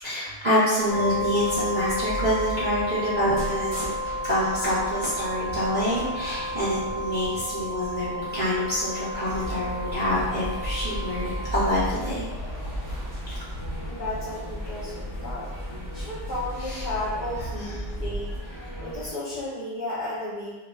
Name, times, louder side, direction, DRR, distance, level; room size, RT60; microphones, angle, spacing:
voice 1, 0.0-3.9 4.2-12.2 16.6-16.8 17.5-17.7, equal, 80° right, -10 dB, 0.3 m, -26 dB
sound 1, 0.8-18.4, equal, 15° left, 1.1 m, -39 dB
sound 2, 0.9-11.7, left 1 dB, 80° left, 1.3 m, -32 dB
sound 3, 9.3-19.1, right 1 dB, 30° left, 1.2 m, -36 dB
voice 2, 13.8-15.5 15.9-20.6, left 1 dB, 50° left, -12 dB, 0.9 m, -34 dB
2.7 x 2.5 x 2.3 m, 1.1 s
omnidirectional pair, 1.6 m